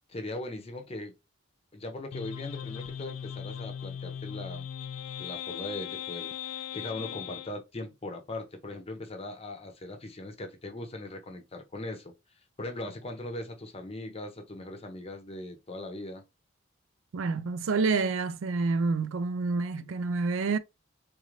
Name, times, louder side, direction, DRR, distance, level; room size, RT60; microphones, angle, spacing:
voice 1, 0.1-1.1 1.7-4.7 5.2-12.1 12.6-16.2, left 1 dB, 30° left, 0.7 m, -39 dB
sound 1, 2.1-7.5, left 9 dB, 80° left, 0.3 m, -38 dB
voice 2, 17.1-20.6, right 4 dB, 75° right, 0.4 m, -28 dB
3.9 x 2.5 x 3.1 m
head